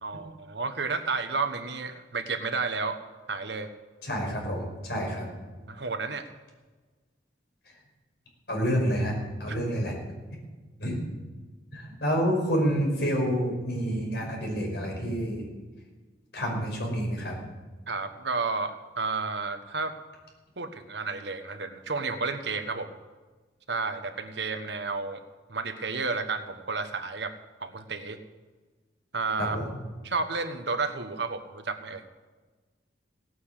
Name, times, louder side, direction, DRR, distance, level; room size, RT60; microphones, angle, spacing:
voice 1, 0.0-3.0 3.3-3.7 5.6-6.3 17.9-19.9 20.6-22.9 23.7-25.2 25.5-28.2 29.1-29.6 30.0-32.0, right 4 dB, 70° right, 8 dB, 1.3 m, -31 dB
voice 2, 4.0-5.3 8.5-10.0 10.8-11.0 11.7-15.5 16.3-17.4 29.4-29.6, equal, 65° left, 0 dB, 5.7 m, -28 dB
17.5 x 9.5 x 8.3 m, 1.3 s
head